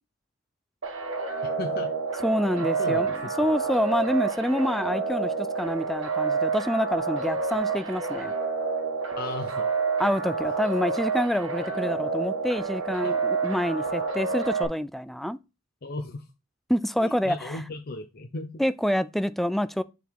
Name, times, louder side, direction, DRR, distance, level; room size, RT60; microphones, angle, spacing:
sound 1, 0.8-14.7, right 4 dB, 85° right, 1.4 m, -29 dB
voice 1, 1.4-1.9 2.5-3.1 9.2-9.7 13.0-13.1 15.8-16.2 17.0-18.6, left 2 dB, 50° left, 0.8 m, -36 dB
voice 2, 2.2-8.3 10.0-15.4 16.7-17.6 18.6-19.8, equal, ahead, 0.3 m, -27 dB
6.8 x 4.0 x 4.7 m
head